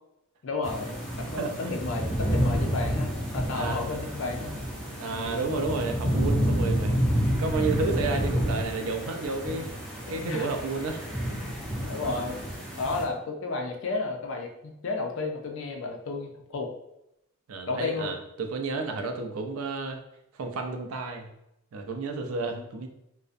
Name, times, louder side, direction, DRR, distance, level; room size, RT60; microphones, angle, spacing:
voice 1, 0.4-4.5 5.1-5.6 10.1-10.5 11.2-11.5 11.8-12.4 12.8-16.7 17.7-18.1 22.5-22.6, left 3 dB, 60° left, 3 dB, 0.4 m, -33 dB
sound 1, 0.6-13.0, equal, ahead, 0.4 m, -29 dB
voice 2, 1.4-1.7 3.5-3.8 5.0-7.0 7.4-9.7 10.1-11.1 17.5-20.0 20.3-21.3 21.7-22.9, right 3 dB, 80° right, 5 dB, 0.4 m, -31 dB
2.5 x 2.0 x 2.4 m, 0.83 s
head